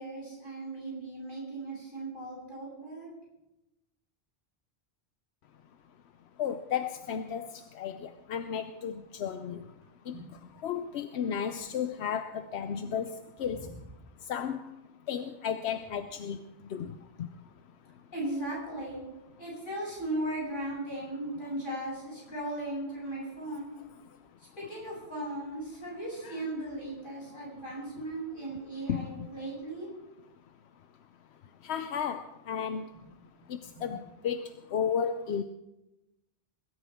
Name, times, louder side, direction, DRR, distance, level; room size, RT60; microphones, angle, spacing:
voice 1, 0.0-3.1 10.1-10.2 13.5-13.7 18.1-19.0 19.4-23.7 24.6-29.9, right 1 dB, 55° left, -5 dB, 7.8 m, -37 dB
voice 2, 6.4-9.6 10.1-10.2 10.6-13.6 14.3-14.6 15.1-16.4 16.7-16.9 26.2-26.4 28.9-29.3 31.6-32.9 33.8-34.4 34.7-35.4, left 8 dB, 85° left, 9 dB, 0.9 m, -33 dB
22.0 x 13.5 x 3.6 m, 0.97 s
omnidirectional pair, 1.1 m